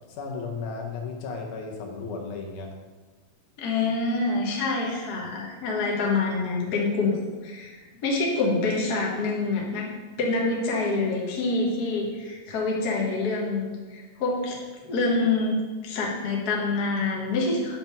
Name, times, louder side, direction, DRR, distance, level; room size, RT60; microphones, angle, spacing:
voice 1, 0.1-2.7, left 4 dB, 80° left, 1 dB, 2.4 m, -34 dB
voice 2, 3.6-7.2 7.4-7.8 8.0-9.9 10.2-14.6 14.9-17.7, left 3 dB, 50° left, -2 dB, 1.1 m, -26 dB
6.9 x 4.4 x 5.4 m, 1.3 s
omnidirectional pair, 3.6 m